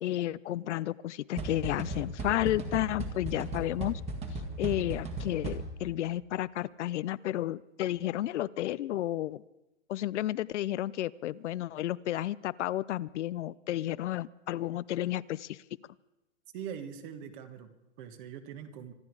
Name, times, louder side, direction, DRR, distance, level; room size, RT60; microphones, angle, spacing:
voice 1, 0.0-4.0 4.6-9.4 9.9-15.6, left 14 dB, 65° left, 19 dB, 0.6 m, -32 dB
sound 1, 1.4-6.0, right 2 dB, 15° right, 1.8 m, -37 dB
voice 2, 16.5-18.9, right 8 dB, 40° right, 9 dB, 1.7 m, -43 dB
25.0 x 11.5 x 4.8 m, 0.92 s
hypercardioid pair, 150°, 38 cm